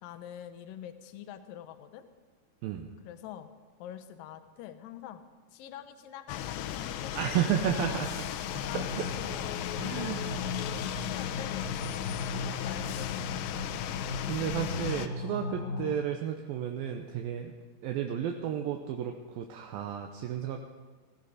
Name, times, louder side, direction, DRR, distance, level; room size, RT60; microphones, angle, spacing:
voice 1, 0.0-2.0 3.0-3.5 3.8-5.2 5.5-8.2 8.7-13.6, left 10 dB, 70° left, 9 dB, 2.2 m, -46 dB
sound 1, 6.3-15.1, left 11 dB, 90° left, 2.9 m, -36 dB
voice 2, 7.1-8.2 8.6-9.1 9.8-10.2 14.3-17.5 17.8-20.6, right 9 dB, 75° right, 3 dB, 2.3 m, -32 dB
sound 2, 8.4-16.0, left 4 dB, 50° left, 2.9 m, -37 dB
16.5 x 15.5 x 5.0 m, 1.3 s
omnidirectional pair, 4.8 m